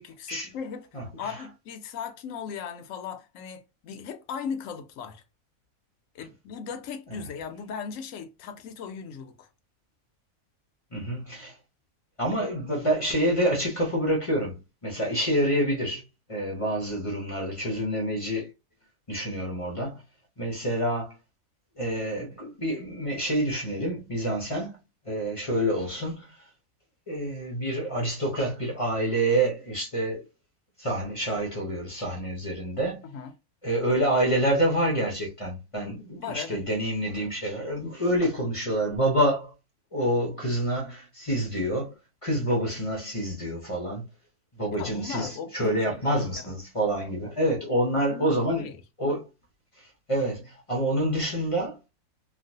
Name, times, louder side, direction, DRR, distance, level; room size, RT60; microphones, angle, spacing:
voice 1, 0.0-5.2 6.1-9.5 33.0-33.3 36.1-36.6 38.0-38.3 44.7-46.5 48.1-48.8, left 6 dB, 70° left, 0.9 m, -38 dB
voice 2, 0.9-1.4 7.1-7.2 10.9-11.6 12.2-16.0 16.3-18.5 19.1-20.0 20.4-21.1 21.8-24.8 25.0-26.5 27.1-30.2 30.8-33.0 33.6-39.5 39.9-41.9 42.2-44.0 44.5-48.7 49.0-49.3 49.8-51.8, right 1 dB, 35° left, 0.6 m, -27 dB
3.1 x 2.4 x 2.7 m
omnidirectional pair, 1.6 m